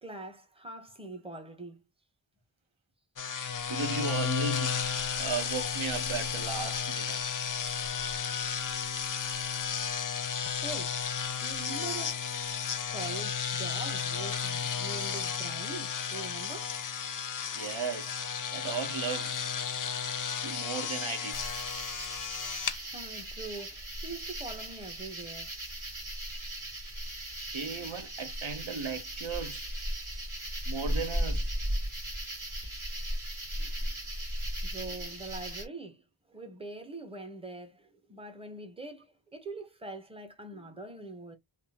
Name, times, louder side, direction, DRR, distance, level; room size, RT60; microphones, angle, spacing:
voice 1, 0.0-1.8 10.6-11.0 11.4-12.2 12.9-16.8 22.8-25.5 33.6-33.9 34.6-41.4, right 2 dB, 10° right, 0.9 m, -43 dB
sound 1, 3.2-22.8, left 7 dB, 45° left, 0.4 m, -33 dB
voice 2, 3.4-7.2 17.5-18.2 18.5-19.3 20.4-21.4 27.2-27.3 27.5-29.7 30.7-31.5, right 5 dB, 70° right, 0.7 m, -36 dB
sound 2, 21.3-35.7, equal, 40° right, 1.9 m, -36 dB
3.5 x 2.0 x 2.8 m
wide cardioid pair, 40°, 49 cm